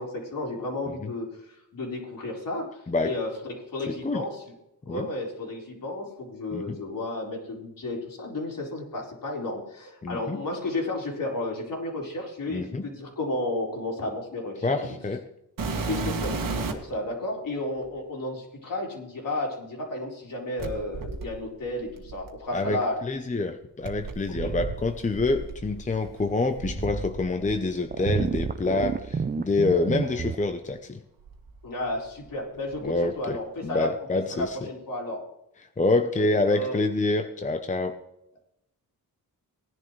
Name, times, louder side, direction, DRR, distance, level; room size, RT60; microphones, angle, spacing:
voice 1, 0.0-4.4 4.9-14.8 15.9-23.0 24.4-24.5 31.6-35.2 36.5-36.8, left 2 dB, 60° left, -2 dB, 4.2 m, -33 dB
voice 2, 3.9-4.2 4.9-5.1 6.5-6.8 10.0-10.4 12.5-12.9 14.6-15.2 22.5-31.0 32.8-34.6 35.8-38.0, left 2 dB, 20° left, 7 dB, 0.7 m, -27 dB
sound 1, 15.6-17.0 17.8-17.9 20.6-22.7 23.8-27.6 27.8-28.9 29.7-29.8 30.4-30.5 31.2-32.3 32.6-33.1 34.4-34.5, right 3 dB, 60° right, 1.8 m, -34 dB
sound 2, 27.9-30.4, right 5 dB, 25° right, 0.5 m, -29 dB
19.0 x 10.5 x 3.2 m, 0.84 s
wide cardioid pair, 105°, 37 cm